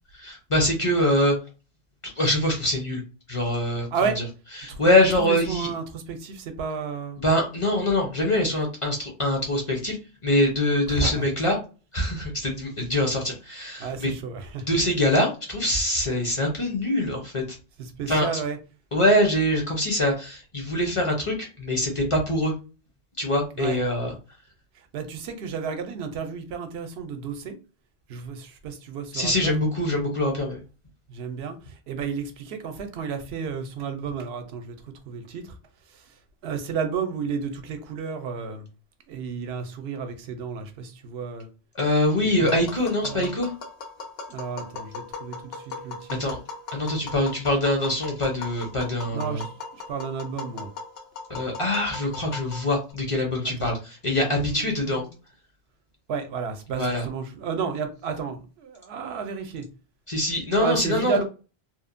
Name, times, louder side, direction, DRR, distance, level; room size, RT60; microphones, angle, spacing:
voice 1, 0.1-1.3 2.0-3.0 3.3-4.2 4.6-5.7 7.2-10.0 10.2-11.6 11.9-14.2 14.7-17.4 18.1-18.4 18.9-22.5 23.2-24.1 29.1-30.6 41.7-43.5 46.1-46.4 46.7-49.4 51.3-55.0 56.8-57.0 60.1-61.2, left 1 dB, 35° left, 0.6 m, -24 dB
voice 2, 5.2-7.2 10.9-11.2 13.8-14.7 17.8-18.6 23.6-23.8 24.7-27.5 28.1-29.5 31.1-34.8 35.1-35.6 35.9-36.1 36.4-38.7 39.1-41.5 42.4-42.7 43.0-43.4 44.3-46.2 49.1-50.7 53.4-53.7 54.4-55.1 56.1-59.7 60.6-61.2, right 6 dB, 80° right, 0.8 m, -32 dB
Tap, 42.5-52.9, left 4 dB, 75° left, 1.0 m, -39 dB
2.8 x 2.1 x 2.5 m
omnidirectional pair, 1.1 m